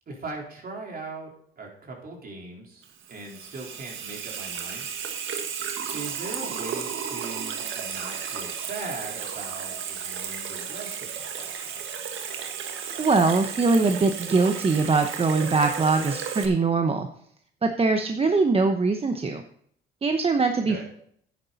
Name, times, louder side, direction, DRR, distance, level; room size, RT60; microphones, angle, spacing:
voice 1, 0.1-2.8 3.1-4.9 5.9-11.8 20.7-20.8, right 3 dB, 50° right, -1 dB, 3.9 m, -39 dB
Water tap faucet / Sink (filling or washing), 2.8-16.5, right 7 dB, 80° right, 1.6 m, -34 dB
voice 2, 13.0-17.1 17.6-19.4 20.0-20.8, right 4 dB, 30° right, 6 dB, 0.9 m, -22 dB
10.5 x 9.8 x 4.1 m, 0.66 s
cardioid pair, 90°, 20 cm